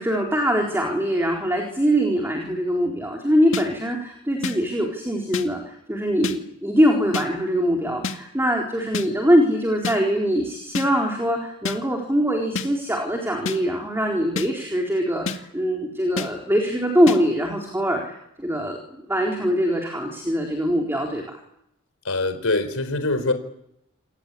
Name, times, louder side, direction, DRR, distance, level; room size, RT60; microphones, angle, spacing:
voice 1, 0.0-21.2, equal, 10° right, 1 dB, 4.2 m, -23 dB
sound 1, 3.5-3.7 4.4-4.6 5.3-5.5 6.2-6.4 7.1-7.3 8.0-8.2 8.9-9.1 9.8-10.0 10.7-10.9 11.7-11.8 12.6-12.7 13.5-13.6 14.4-14.5 15.3-15.4 16.2-16.3 17.1-17.2, left 4 dB, 65° left, 2.2 m, -27 dB
voice 2, 22.0-23.3, left 2 dB, 85° left, 10 dB, 4.4 m, -23 dB
28.5 x 22.0 x 8.6 m, 0.78 s
head